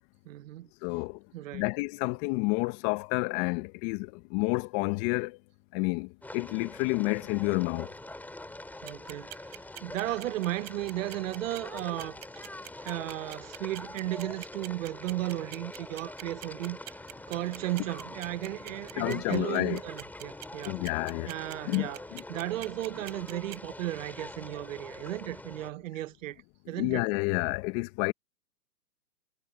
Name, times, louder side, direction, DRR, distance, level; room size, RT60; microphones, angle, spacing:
voice 1, 0.2-0.7 1.3-1.6 8.8-12.2 12.8-16.8 17.3-20.8 21.2-22.0 22.3-27.0, right 15 dB, 50° right, 1.2 m, -35 dB
voice 2, 0.8-1.2 1.5-5.4 5.7-7.9 19.0-19.8 20.6-21.4 21.6-22.2 26.7-28.1, left 26 dB, 30° left, 1.4 m, -30 dB
sound 1, 6.2-25.7, left 1 dB, 5° left, 6.3 m, -44 dB
sound 2, 8.9-23.6, right 23 dB, 30° right, 4.5 m, -44 dB
hypercardioid pair, 135°, 49 cm